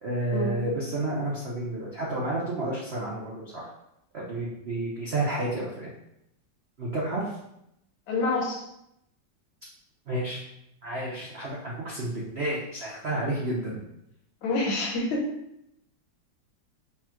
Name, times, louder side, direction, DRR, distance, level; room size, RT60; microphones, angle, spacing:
voice 1, 0.0-3.7 4.1-5.9 6.8-7.4 10.1-10.4 10.8-13.8, right 1 dB, 75° right, -5 dB, 0.5 m, -30 dB
voice 2, 8.1-8.6 14.4-15.2, left 2 dB, 80° left, -1 dB, 1.7 m, -27 dB
3.4 x 2.4 x 4.4 m, 0.80 s
omnidirectional pair, 2.1 m